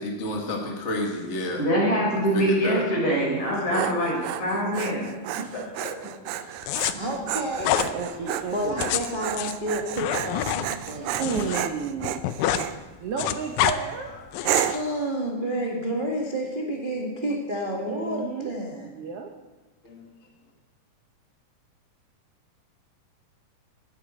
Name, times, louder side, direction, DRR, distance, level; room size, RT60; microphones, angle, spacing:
voice 1, 0.0-1.6 2.3-2.8 3.9-4.0 19.8-20.0, left 1 dB, 30° left, 0 dB, 1.4 m, -30 dB
voice 2, 1.6-5.4 5.8-5.9, equal, 60° left, -4 dB, 7.3 m, -24 dB
Dog, 3.3-12.8 13.3-13.7 14.4-14.9, right 12 dB, 90° right, 2.3 m, -32 dB
sound 1, 6.6-6.9 7.6-7.9 8.6-11.6 11.9-12.7 12.9-13.8 14.3-14.8, left 12 dB, 75° left, 1.9 m, -27 dB
voice 3, 6.9-7.8 8.5-11.2 14.7-18.9, right 1 dB, 25° right, -2 dB, 1.1 m, -30 dB
voice 4, 7.8-8.9 11.0-12.1 13.0-14.1 17.9-18.5 18.8-19.3, right 6 dB, 70° right, 3 dB, 1.5 m, -32 dB
17.5 x 13.0 x 4.4 m, 1.2 s
omnidirectional pair, 3.8 m